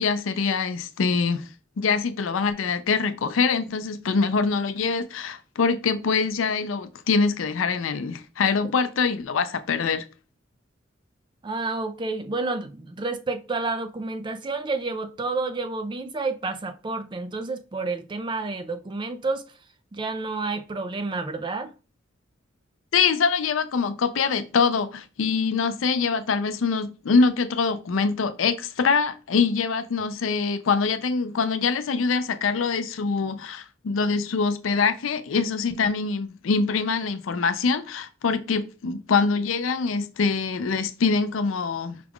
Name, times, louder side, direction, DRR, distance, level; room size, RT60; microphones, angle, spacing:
voice 1, 0.0-1.5 1.8-10.1 22.9-42.0, left 5 dB, 85° left, 0.5 m, -24 dB
voice 2, 11.4-19.4 19.9-21.7, right 3 dB, 25° right, 0.3 m, -30 dB
4.9 x 2.3 x 3.5 m
head